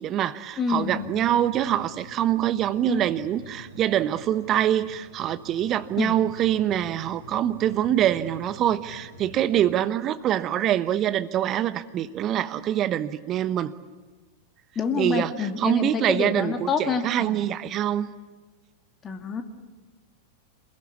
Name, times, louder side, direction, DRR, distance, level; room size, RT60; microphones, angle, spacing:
voice 1, 0.0-13.7 15.0-15.3 15.6-18.1, right 11 dB, 30° right, 12 dB, 1.1 m, -25 dB
voice 2, 0.6-1.1 2.9-3.0 6.0-6.2 14.8-17.5 19.0-19.4, left 5 dB, 25° left, 5 dB, 2.3 m, -27 dB
sound 1, 0.7-9.8, equal, 85° right, 3.4 m, -46 dB
27.5 x 21.5 x 8.5 m, 1.3 s
figure-of-eight pair, 90°, 0 cm